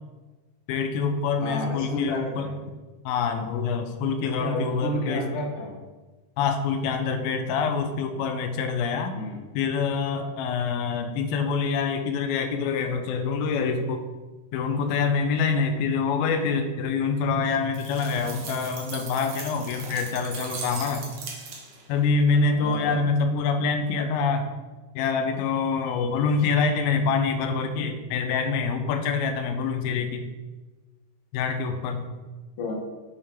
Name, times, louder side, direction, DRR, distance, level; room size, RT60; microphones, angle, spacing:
voice 1, 0.7-2.6 3.1-5.3 6.4-9.2 9.6-14.0 14.5-21.1 21.9-24.5 25.0-30.2 31.3-32.1, left 5 dB, 90° left, 6 dB, 2.5 m, -26 dB
voice 2, 1.4-2.5 4.4-5.8 9.1-9.4 22.5-23.0 32.6-32.7, left 1 dB, 55° left, -2 dB, 1.7 m, -31 dB
sound 1, 17.7-21.9, right 4 dB, 70° right, 1.3 m, -39 dB
8.1 x 5.5 x 3.4 m, 1.2 s
omnidirectional pair, 4.1 m